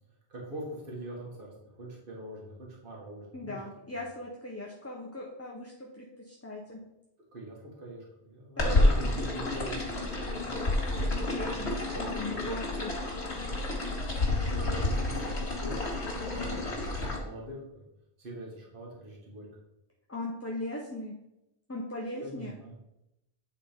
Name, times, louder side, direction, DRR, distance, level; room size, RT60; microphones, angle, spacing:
voice 1, 0.3-3.6 3.9-4.0 7.3-10.5 11.4-12.4 14.0-17.8 18.2-19.5 22.1-22.7, right 1 dB, 55° right, -3 dB, 1.8 m, -43 dB
voice 2, 3.3-6.8 8.6-8.9 11.3-12.9 20.1-21.2 21.7-22.6, left 1 dB, 15° left, -3 dB, 0.7 m, -39 dB
sound 1, 8.6-17.2, left 2 dB, 75° left, 2.1 m, -29 dB
8.7 x 3.6 x 5.0 m, 0.88 s
omnidirectional pair, 1.1 m